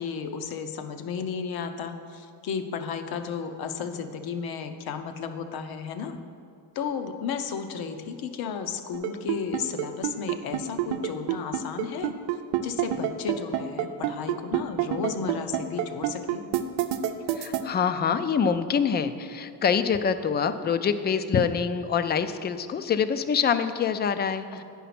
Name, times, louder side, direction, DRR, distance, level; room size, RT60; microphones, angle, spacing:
voice 1, 0.0-6.2 6.7-12.1 12.6-16.4, left 6 dB, 60° left, 8 dB, 0.8 m, -33 dB
sound 1, 8.9-17.6, right 13 dB, 90° right, 0.7 m, -26 dB
voice 2, 17.3-24.6, left 6 dB, 25° left, 11 dB, 0.4 m, -25 dB
9.2 x 5.6 x 5.9 m, 2.3 s
cardioid pair, 120°, 41 cm